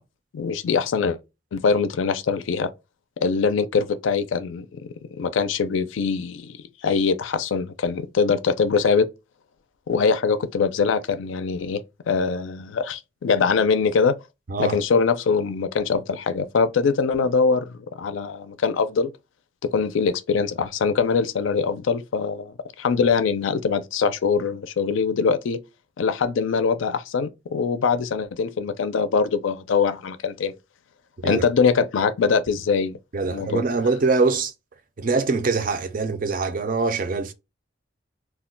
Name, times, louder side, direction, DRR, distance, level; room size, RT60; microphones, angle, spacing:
voice 1, 0.3-1.2 1.5-2.7 3.2-9.1 9.9-14.1 14.6-19.1 19.6-25.6 26.0-30.5 31.2-33.0 33.3-33.6, left 5 dB, 80° left, 0.4 m, -23 dB
voice 2, 33.1-34.5 35.0-37.3, right 4 dB, 45° right, 0.4 m, -23 dB
2.3 x 2.1 x 3.7 m
head